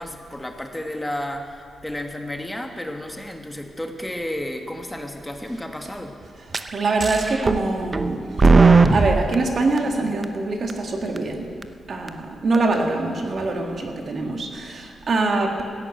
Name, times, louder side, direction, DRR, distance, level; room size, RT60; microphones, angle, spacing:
voice 1, 0.0-6.1, left 1 dB, 10° left, 4 dB, 1.6 m, -32 dB
sound 1, 6.5-6.6 7.0-7.7 7.9-9.3 9.8-9.9 10.2-10.3 10.7-10.8 11.2-11.3 11.6-11.7 12.1-12.2 12.5-12.6, right 3 dB, 40° right, 0.7 m, -16 dB
voice 2, 6.7-11.5 11.9-15.6, right 3 dB, 60° right, 3 dB, 1.9 m, -24 dB
13.5 x 9.9 x 8.3 m, 2.3 s
supercardioid pair, 55°, 0 cm